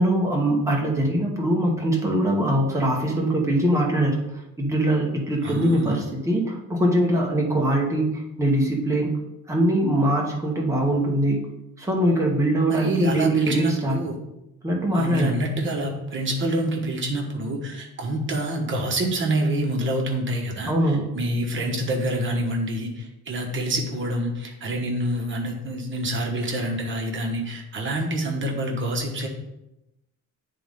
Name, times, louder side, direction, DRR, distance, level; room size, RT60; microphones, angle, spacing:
voice 1, 0.0-9.2 9.5-11.4 11.8-14.0 14.6-15.3 20.7-21.1, right 1 dB, 10° right, -2 dB, 1.2 m, -22 dB
voice 2, 5.4-6.0 12.7-14.2 14.9-20.7 21.1-29.3, right 1 dB, 35° right, 1 dB, 1.4 m, -27 dB
9.9 x 3.9 x 3.6 m, 0.90 s
cardioid pair, 140°, 33 cm